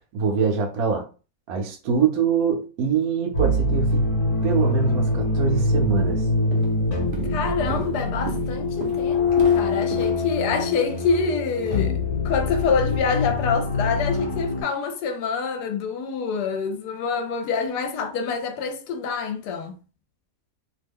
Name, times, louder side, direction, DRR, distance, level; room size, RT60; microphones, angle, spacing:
voice 1, 0.1-1.0 1.5-4.1 4.4-6.3, right 6 dB, 65° right, 1.0 m, -24 dB
sound 1, 3.3-14.6, left 2 dB, 50° left, 1.3 m, -24 dB
Walk footsteps, 6.0-6.2 6.5-6.8 7.1-11.7, right 3 dB, 50° right, 0.6 m, -38 dB
voice 2, 7.2-19.8, left 5 dB, 75° left, 1.1 m, -26 dB
2.9 x 2.1 x 3.4 m
omnidirectional pair, 1.8 m